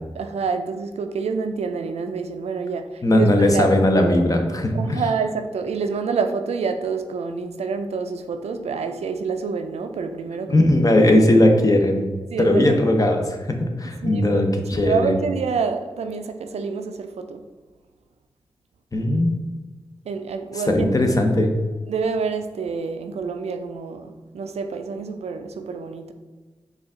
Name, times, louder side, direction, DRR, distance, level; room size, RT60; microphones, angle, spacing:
voice 1, 0.1-3.7 4.7-10.7 12.3-12.6 14.0-14.4 14.7-17.4 20.1-20.9 21.9-26.1, right 5 dB, 80° right, 7 dB, 0.4 m, -27 dB
voice 2, 3.0-5.0 10.5-12.1 12.4-15.1 18.9-19.3 20.7-21.5, left 1 dB, 35° left, 3 dB, 0.8 m, -18 dB
5.0 x 2.4 x 3.6 m, 1.3 s
cardioid pair, 45°, 11 cm